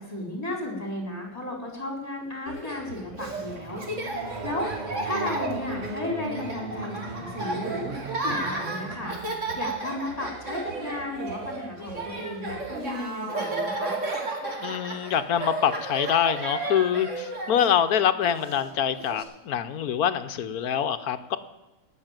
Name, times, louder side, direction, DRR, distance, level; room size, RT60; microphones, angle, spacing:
voice 1, 0.0-4.7 5.0-13.9, left 1 dB, 25° left, 2 dB, 4.1 m, -34 dB
Laughter, 2.5-19.2, right 2 dB, 50° right, 2.6 m, -34 dB
sound 1, 2.7-10.0, right 2 dB, 35° right, 0.9 m, -38 dB
voice 2, 14.6-21.4, left 9 dB, 75° left, 11 dB, 1.3 m, -25 dB
19.0 x 6.5 x 9.0 m, 1.0 s
omnidirectional pair, 1.6 m